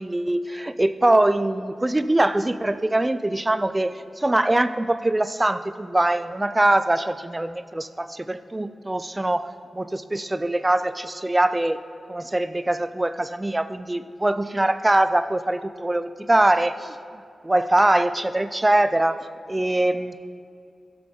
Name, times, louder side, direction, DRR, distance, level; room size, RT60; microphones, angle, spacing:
voice 1, 0.0-9.5 9.7-11.8 12.1-17.0 17.4-19.2 19.5-20.2, right 1 dB, 20° right, 12 dB, 0.5 m, -22 dB
16.0 x 6.8 x 3.8 m, 2.3 s
cardioid pair, 55°, 0 cm